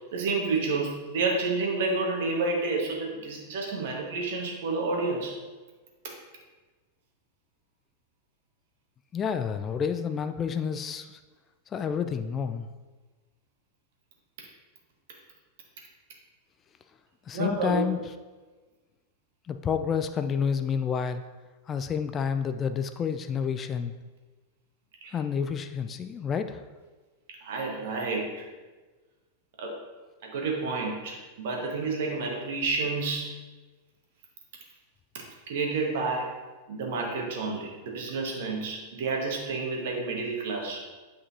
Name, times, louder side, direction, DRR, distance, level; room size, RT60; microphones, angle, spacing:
voice 1, 0.1-5.3 17.3-17.9 25.0-25.1 27.4-28.3 29.6-29.7 30.2-33.3 35.5-36.3 36.7-40.8, right 3 dB, 55° right, 0 dB, 1.5 m, -29 dB
voice 2, 9.1-11.2 11.7-12.7 17.3-18.0 19.5-21.2 21.7-23.9 25.1-26.6, left 7 dB, 25° left, 9 dB, 0.4 m, -29 dB
8.2 x 5.3 x 2.8 m, 1.3 s
figure-of-eight pair, 90°, 0 cm